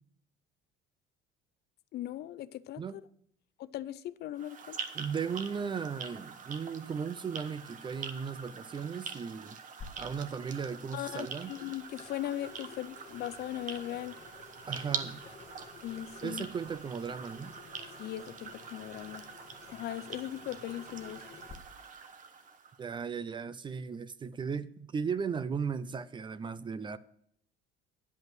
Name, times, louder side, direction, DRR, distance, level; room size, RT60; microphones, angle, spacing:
voice 1, 1.9-3.0 3.6-4.8 10.9-14.2 15.8-16.5 18.0-19.3 19.7-21.2, left 13 dB, 50° left, 0.5 m, -39 dB
sound 1, 4.3-22.8, right 6 dB, 40° right, 1.1 m, -44 dB
voice 2, 4.9-9.6 10.0-11.5 14.7-15.2 16.2-17.5 22.8-27.0, right 6 dB, 25° right, 0.4 m, -36 dB
Water tap faucet / Sink (filling or washing), 9.8-21.5, left 5 dB, 30° left, 1.2 m, -53 dB
10.5 x 5.3 x 7.7 m
cardioid pair, 135°, 21 cm